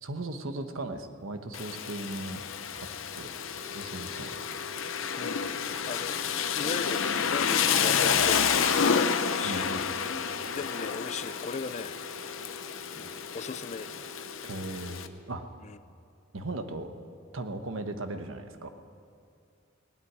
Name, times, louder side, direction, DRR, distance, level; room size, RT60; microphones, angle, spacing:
voice 1, 0.0-2.4 2.7-2.9 3.2-3.3 3.7-4.3 9.4-10.0 14.4-15.4 16.3-16.9 17.3-18.7, right 2 dB, 85° right, 8 dB, 1.1 m, -37 dB
Rain, 1.5-15.1, left 7 dB, 80° left, 0.7 m, -30 dB
sound 1, 3.2-15.0, left 1 dB, ahead, 2.1 m, -48 dB
voice 2, 5.1-5.5 5.9-12.0 13.0-14.1 15.6-15.8, left 4 dB, 35° left, 14 dB, 0.4 m, -38 dB
17.5 x 8.0 x 9.9 m, 2.4 s
head